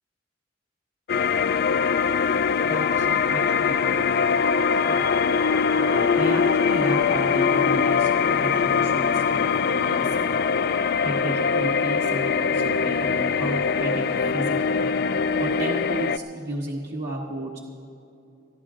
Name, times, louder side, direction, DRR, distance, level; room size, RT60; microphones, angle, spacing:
sound 1, 1.1-16.2, left 6 dB, 55° left, 0.4 m, -22 dB
voice 1, 2.6-5.2 5.8-10.3 11.0-14.8 15.4-17.6, right 1 dB, 60° right, -4 dB, 1.3 m, -33 dB
27.5 x 14.5 x 2.5 m, 2.6 s
head